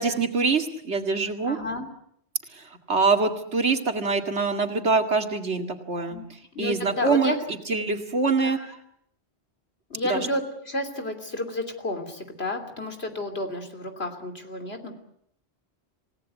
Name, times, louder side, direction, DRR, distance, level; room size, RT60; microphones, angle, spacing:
voice 1, 0.0-1.6 2.6-6.2 6.6-8.6 10.0-10.3, right 4 dB, 80° right, 5 dB, 2.4 m, -24 dB
voice 2, 1.4-1.9 6.1-6.2 6.5-7.3 8.4-8.5 9.9-14.9, left 1 dB, 65° left, 6 dB, 3.4 m, -31 dB
28.0 x 17.5 x 8.2 m, 0.70 s
omnidirectional pair, 1.1 m